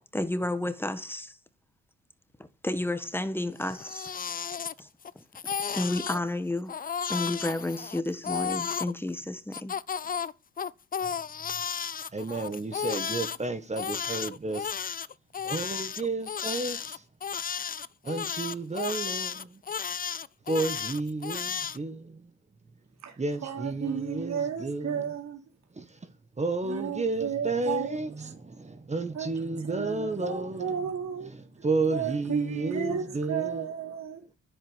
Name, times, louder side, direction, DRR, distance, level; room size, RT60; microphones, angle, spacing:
voice 1, 0.1-1.4 2.6-4.2 4.8-4.9 5.4-6.8 7.1-9.7, left 1 dB, 5° left, 1.5 m, -31 dB
Crying sobbing, 3.6-5.1 5.3-6.2 6.7-8.9 9.5-13.4 13.8-21.8, left 7 dB, 30° left, 0.5 m, -33 dB
voice 2, 12.1-14.8 15.4-17.0 18.0-19.5 20.5-22.2 23.2-25.1 25.8-25.9 26.4-30.7 31.6-33.6, right 3 dB, 20° right, 1.6 m, -32 dB
voice 3, 23.0-25.4 26.6-28.3 29.1-31.3 31.9-34.3, right 7 dB, 65° right, 4.1 m, -33 dB
10.0 x 8.0 x 9.0 m
cardioid pair, 90°, 30 cm